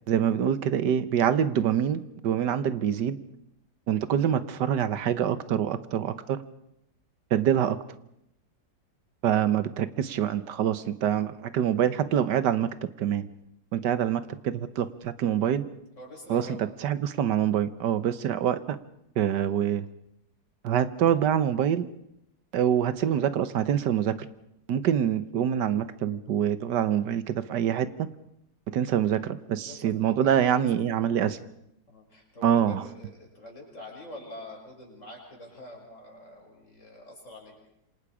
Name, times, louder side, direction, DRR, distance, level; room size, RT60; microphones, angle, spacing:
voice 1, 0.1-3.2 3.9-6.4 7.3-7.8 9.2-12.7 13.0-13.3 13.7-15.7 16.3-18.8 19.2-19.9 20.6-21.9 22.5-24.2 24.7-28.1 28.7-31.4 32.4-32.8, right 9 dB, 85° right, 13 dB, 1.6 m, -25 dB
voice 2, 15.9-16.6 29.6-30.0 30.2-30.7 31.9-37.5, left 1 dB, 45° left, -1 dB, 7.0 m, -45 dB
27.5 x 25.5 x 5.0 m, 0.80 s
omnidirectional pair, 1.8 m